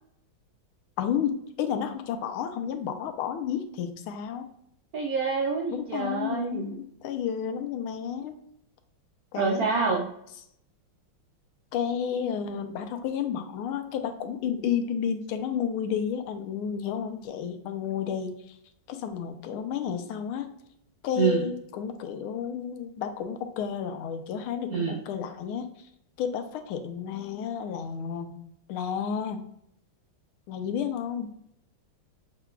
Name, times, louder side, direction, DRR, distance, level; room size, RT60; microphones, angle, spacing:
voice 1, 1.0-4.5 5.7-8.4 9.3-9.7 11.7-18.6 18.9-20.5 21.0-25.7 26.2-28.4 28.7-29.5 30.5-31.3, left 8 dB, 85° left, 7 dB, 1.5 m, -31 dB
voice 2, 4.9-6.7 9.4-10.1 21.2-21.4 24.7-25.0, right 5 dB, 75° right, 0 dB, 0.8 m, -27 dB
6.9 x 2.9 x 2.2 m, 0.75 s
omnidirectional pair, 2.3 m